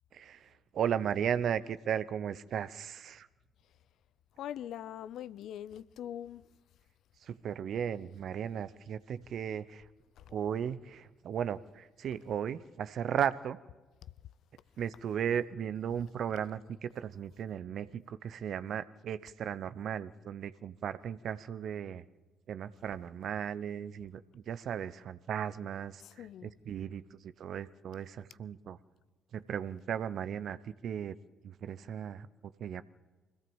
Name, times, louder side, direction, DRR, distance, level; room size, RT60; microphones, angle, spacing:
voice 1, 0.1-3.3 7.2-9.9 10.3-13.6 14.8-22.0 22.5-28.8 29.3-31.2 31.4-32.8, right 8 dB, 60° right, 0.8 m, -36 dB
voice 2, 4.4-6.4 10.2-10.3 26.0-26.5, left 10 dB, 65° left, 0.6 m, -42 dB
24.5 x 17.0 x 7.2 m
figure-of-eight pair, 40°, 0 cm